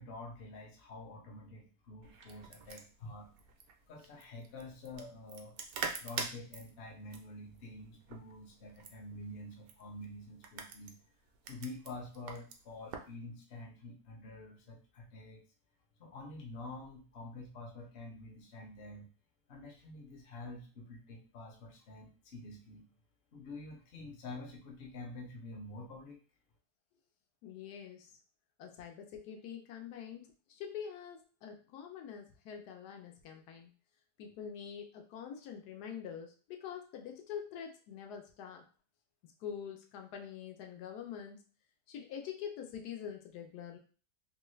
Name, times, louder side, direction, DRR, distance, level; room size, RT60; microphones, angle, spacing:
voice 1, 0.0-3.3 3.9-5.6 6.0-11.0 11.5-15.4 16.0-19.1 19.5-22.9 23.3-26.2, left 2 dB, 50° left, 0 dB, 0.8 m, -47 dB
sound 1, 2.0-13.2, right 5 dB, 70° right, 0.9 m, -46 dB
voice 2, 27.4-28.1 28.6-33.7 34.2-38.6 39.2-41.4 41.9-43.8, left 8 dB, 85° left, 3 dB, 1.2 m, -45 dB
3.0 x 2.3 x 3.1 m, 0.37 s
omnidirectional pair, 1.7 m